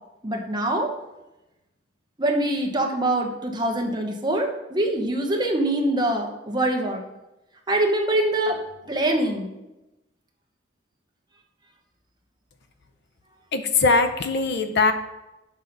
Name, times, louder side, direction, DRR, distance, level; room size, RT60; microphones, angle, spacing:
voice 1, 0.2-0.9 2.2-7.0 7.7-8.6 8.9-9.5, right 1 dB, 25° right, 2 dB, 1.0 m, -24 dB
voice 2, 13.5-14.9, left 4 dB, 60° left, 8 dB, 0.7 m, -21 dB
6.3 x 5.5 x 5.2 m, 0.98 s
head